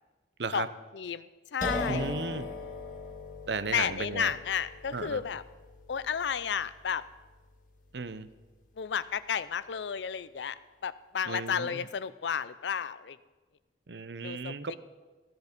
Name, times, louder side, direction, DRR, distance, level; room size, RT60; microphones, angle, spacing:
voice 1, 0.9-1.3 1.5-2.1 3.7-5.4 5.9-7.0 8.8-10.6 10.8-13.2 14.2-14.8, left 7 dB, 85° left, 16 dB, 0.5 m, -32 dB
sound 1, 1.6-9.2, left 2 dB, 45° left, 1.9 m, -40 dB
voice 2, 1.9-2.5 3.5-4.3 4.9-5.2 7.9-8.3 11.2-11.9 13.9-14.8, right 4 dB, 75° right, 13 dB, 0.7 m, -35 dB
15.5 x 10.5 x 5.2 m, 1.3 s
head